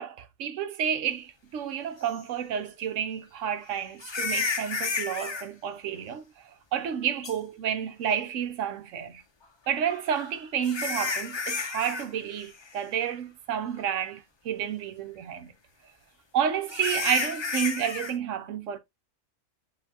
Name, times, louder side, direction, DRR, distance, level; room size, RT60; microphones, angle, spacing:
voice 1, 0.0-6.2 6.7-9.2 9.7-15.5 16.3-18.8, right 8 dB, 70° right, 1.0 m, -30 dB
sound 1, 2.1-2.2 4.0-5.4 7.2-7.3 9.9-12.1 12.3-12.7 13.1-13.2 13.8-13.9 16.7-18.1, left 4 dB, 45° left, 0.3 m, -31 dB
7.2 x 2.8 x 2.7 m
omnidirectional pair, 1.4 m